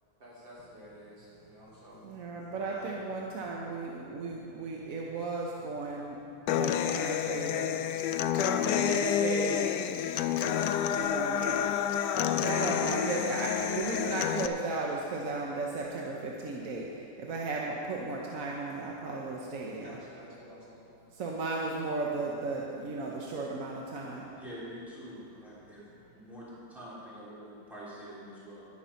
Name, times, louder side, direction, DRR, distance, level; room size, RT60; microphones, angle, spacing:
voice 1, 0.2-2.0 2.7-2.9 19.8-20.8, equal, 85° right, -8 dB, 4.1 m, -50 dB
voice 2, 2.0-6.2 6.5-7.8 8.3-9.7 10.9-11.7 12.4-20.0 21.1-24.3, right 3 dB, 55° right, -2 dB, 1.2 m, -35 dB
Human voice / Acoustic guitar, 6.5-14.5, left 9 dB, 75° left, 1.1 m, -29 dB
voice 3, 24.3-25.9 26.1-28.7, equal, ahead, -9 dB, 3.4 m, -46 dB
11.0 x 10.0 x 5.7 m, 2.7 s
omnidirectional pair, 2.1 m